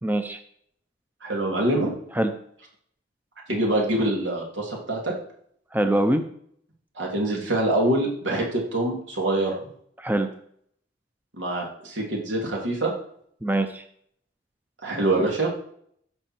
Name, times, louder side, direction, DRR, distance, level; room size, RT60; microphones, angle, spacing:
voice 1, 0.0-0.4 2.1-2.3 5.7-6.2 10.0-10.3 13.4-13.8, right 1 dB, 10° right, 7 dB, 0.6 m, -23 dB
voice 2, 1.2-1.9 3.5-5.1 7.0-9.6 11.3-12.9 14.8-15.5, right 1 dB, 85° right, -1 dB, 3.1 m, -25 dB
15.5 x 5.7 x 4.5 m, 0.67 s
head